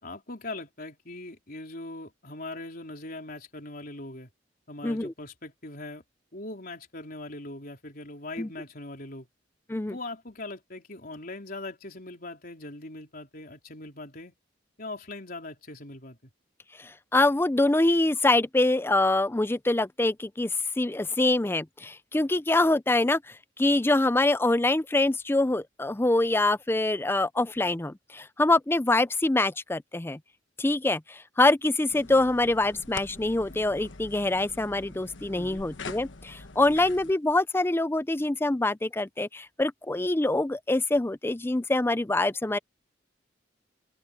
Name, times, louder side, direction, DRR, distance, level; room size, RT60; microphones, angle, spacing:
voice 1, 0.0-4.3 4.7-6.0 6.3-9.3 9.9-14.4 14.8-16.2 35.3-35.7, left 2 dB, 50° left, 4.2 m, -40 dB
voice 2, 16.8-30.2 30.6-42.6, left 2 dB, 10° left, 0.5 m, -25 dB
sound 1, 31.9-37.1, left 3 dB, 85° left, 1.2 m, -44 dB
open air
head